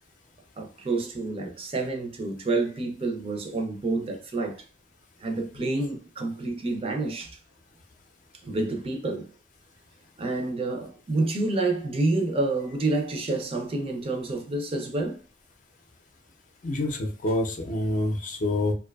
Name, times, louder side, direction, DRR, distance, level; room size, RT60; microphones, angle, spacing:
voice 1, 0.6-4.6 5.2-7.4 8.4-9.3 10.2-15.2, right 2 dB, 35° right, 0.4 m, -28 dB
voice 2, 16.6-18.7, left 1 dB, 50° left, 0.5 m, -27 dB
2.6 x 2.2 x 2.2 m
head